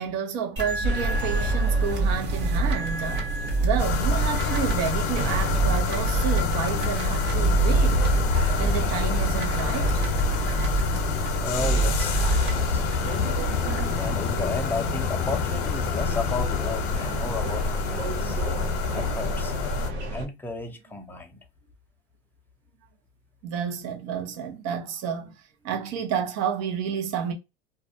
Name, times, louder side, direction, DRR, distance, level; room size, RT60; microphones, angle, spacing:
voice 1, 0.0-8.2 8.6-10.0 23.4-27.3, right 7 dB, 55° right, 0.9 m, -30 dB
sound 1, 0.6-14.1, right 3 dB, 35° right, 1.2 m, -28 dB
sound 2, 0.8-20.3, equal, 85° right, 1.2 m, -31 dB
sound 3, 3.8-19.9, left 5 dB, 70° left, 0.8 m, -27 dB
voice 2, 11.4-12.2 12.5-13.3 14.0-18.4 18.9-19.5 20.1-21.4, left 3 dB, 5° left, 0.5 m, -33 dB
2.5 x 2.2 x 2.6 m
supercardioid pair, 110°, 32 cm